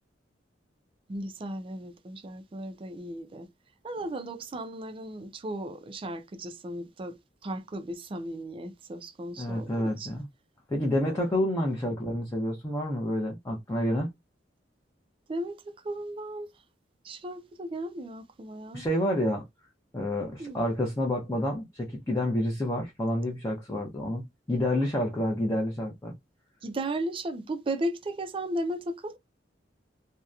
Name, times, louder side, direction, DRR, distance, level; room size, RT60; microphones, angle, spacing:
voice 1, 1.1-3.5 3.8-7.2 7.4-10.1 11.1-11.3 15.3-16.5 17.0-18.9 20.4-20.6 26.6-29.2, right 1 dB, 30° right, 0.4 m, -35 dB
voice 2, 9.4-10.3 10.7-14.1 18.7-19.4 19.9-24.2 24.5-26.1, left 1 dB, 15° left, 0.6 m, -29 dB
2.7 x 2.1 x 2.4 m
head